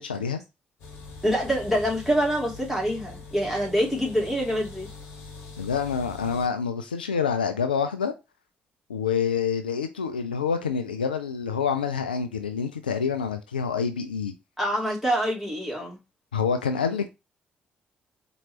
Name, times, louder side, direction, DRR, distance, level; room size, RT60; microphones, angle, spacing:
voice 1, 0.1-0.4 5.6-8.1 8.9-14.3 16.3-17.1, left 6 dB, 85° left, 0.3 m, -27 dB
sound 1, 0.8-6.5, left 3 dB, 60° left, 1.2 m, -43 dB
voice 2, 1.2-4.9 14.6-16.0, equal, ahead, 2.6 m, -25 dB
4.4 x 3.0 x 2.8 m
figure-of-eight pair, 45°, 5 cm